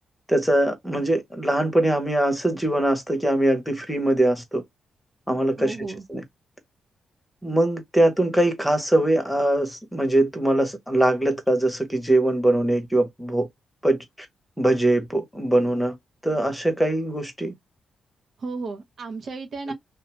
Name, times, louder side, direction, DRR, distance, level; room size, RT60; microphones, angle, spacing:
voice 1, 0.3-4.6 5.3-6.2 7.4-13.5 13.8-14.0 14.6-15.9 16.2-17.5, right 1 dB, 5° left, 1.0 m, -22 dB
voice 2, 5.6-6.0 18.4-19.7, right 3 dB, 60° right, 0.7 m, -33 dB
2.6 x 2.3 x 2.9 m
cardioid pair, 70°, 0 cm